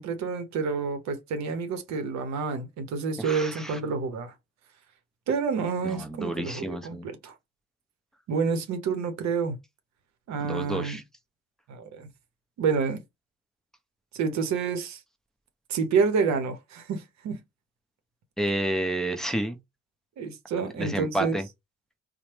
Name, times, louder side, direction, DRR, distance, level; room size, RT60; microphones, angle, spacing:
voice 1, 0.0-4.3 5.3-7.3 8.3-9.6 10.3-11.0 11.7-12.1 12.6-13.0 14.1-15.0 15.7-17.4 20.2-21.4, right 5 dB, 60° right, 0.8 m, -28 dB
voice 2, 3.2-3.8 5.8-7.1 10.4-11.0 18.4-19.6 20.8-21.4, right 1 dB, ahead, 0.7 m, -30 dB
3.0 x 2.1 x 2.9 m
hypercardioid pair, 50°, 32 cm